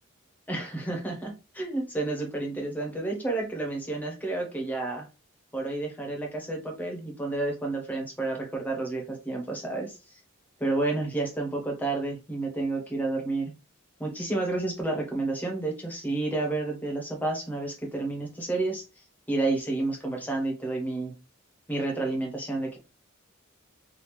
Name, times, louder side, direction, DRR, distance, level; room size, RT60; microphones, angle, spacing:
voice 1, 0.5-5.1 5.5-10.0 10.6-13.5 14.0-18.8 19.3-21.1 21.7-22.8, right 2 dB, 10° left, 2 dB, 1.0 m, -30 dB
3.4 x 2.6 x 3.1 m, 0.30 s
head